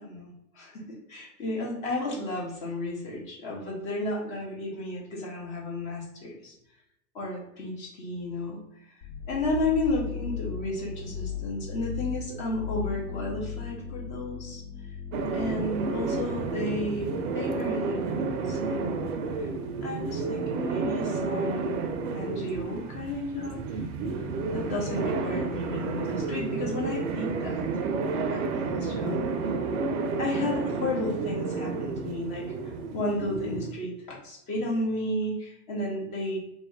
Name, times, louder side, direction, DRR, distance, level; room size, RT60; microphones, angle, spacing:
voice 1, 0.0-6.5 7.1-8.6 9.3-14.6 15.3-19.1 19.4-19.5 19.8-21.9 22.1-23.8 24.5-27.6 28.3-29.3 30.2-36.4, left 1 dB, 20° left, -2 dB, 0.3 m, -33 dB
sound 1, 9.0-16.7, left 8 dB, 65° left, 1.1 m, -37 dB
sound 2, 15.1-33.7, right 4 dB, 55° right, 0.5 m, -31 dB
2.4 x 2.0 x 3.5 m, 0.81 s
hypercardioid pair, 100°, 46 cm